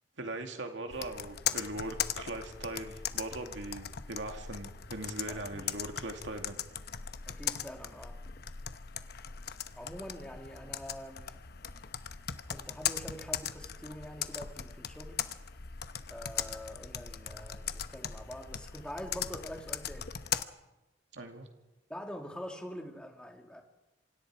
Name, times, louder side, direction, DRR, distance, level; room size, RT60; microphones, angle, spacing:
voice 1, 0.2-6.6 21.1-21.5, right 2 dB, 80° right, 2.3 m, -40 dB
Computer keyboard, 0.9-20.4, left 9 dB, 60° left, 1.0 m, -39 dB
voice 2, 5.3-5.6 7.3-8.2 9.8-11.4 12.5-15.3 16.1-20.1 21.9-23.6, equal, 5° left, 2.5 m, -45 dB
27.5 x 25.5 x 4.8 m
head